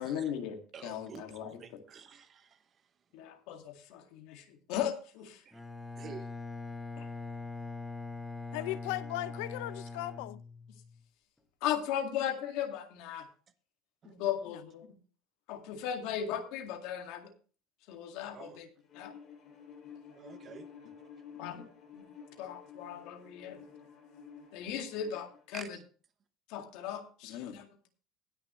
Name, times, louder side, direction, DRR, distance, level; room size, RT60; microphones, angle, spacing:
voice 1, 0.0-1.6 3.1-5.4 7.0-7.1 11.6-13.3 14.0-14.9 15.5-17.3 17.9-18.7 18.9-19.1 21.4-21.7 21.9-22.1 22.4-23.6 24.5-25.8 26.5-27.9, left 9 dB, 60° left, 2.1 m, -37 dB
voice 2, 0.7-2.6 5.4-5.6 6.0-6.3 14.0-14.1 18.3-18.6 20.2-20.7 25.5-25.8, right 6 dB, 25° right, 1.0 m, -49 dB
Bowed string instrument, 5.5-11.0, left 3 dB, ahead, 1.3 m, -42 dB
voice 3, 8.5-10.4 14.5-14.6, left 17 dB, 75° left, 0.6 m, -37 dB
Bowed string instrument 2, 18.9-25.5, left 6 dB, 25° left, 6.4 m, -52 dB
19.5 x 6.7 x 3.1 m
cardioid pair, 180°, 0 cm